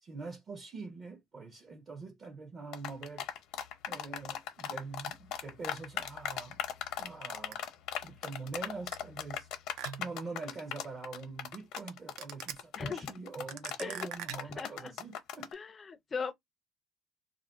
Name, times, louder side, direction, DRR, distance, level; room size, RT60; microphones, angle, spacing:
voice 1, 0.0-3.3 3.9-6.6 6.9-7.6 8.0-15.6, right 4 dB, 30° right, 0.5 m, -44 dB
sound 1, 2.7-15.5, left 9 dB, 65° left, 0.6 m, -38 dB
sound 2, 7.5-7.6 8.9-9.0 9.8-10.2 11.8-11.9 12.2-12.5 13.5-14.6, right 10 dB, 85° right, 0.4 m, -41 dB
voice 2, 12.7-13.1 13.8-14.0 14.6-14.9 15.5-16.3, left 5 dB, 25° left, 0.4 m, -38 dB
2.4 x 2.1 x 3.4 m
cardioid pair, 155°, 0 cm